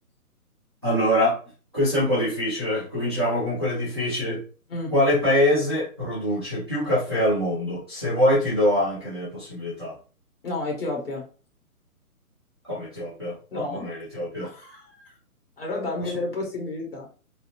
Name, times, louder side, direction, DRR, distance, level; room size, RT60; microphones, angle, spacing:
voice 1, 0.8-1.4 1.7-4.4 4.9-9.9 12.7-14.5 16.0-16.1, left 1 dB, 15° right, -11 dB, 0.8 m, -24 dB
voice 2, 10.4-11.2 13.5-13.8 14.4-15.1 15.6-17.0, left 2 dB, 40° left, -1 dB, 1.4 m, -31 dB
3.8 x 2.1 x 2.9 m, 0.37 s
hypercardioid pair, 175°, 46 cm